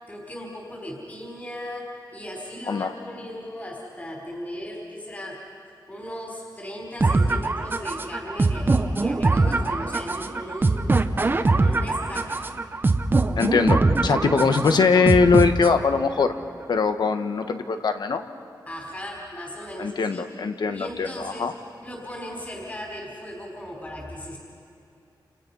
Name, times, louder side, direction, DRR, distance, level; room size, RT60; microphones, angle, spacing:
voice 1, 0.1-5.5 5.9-10.9 11.3-12.5 18.7-20.2 20.7-21.5 21.8-24.4, equal, 20° left, -1 dB, 4.3 m, -37 dB
sound 1, 7.0-16.0, right 3 dB, 25° right, 0.9 m, -22 dB
voice 2, 13.4-16.3 16.7-18.2 19.8-21.5, left 5 dB, 65° left, 8 dB, 1.5 m, -21 dB
29.5 x 29.5 x 5.6 m, 2.7 s
wide cardioid pair, 170°, 8 cm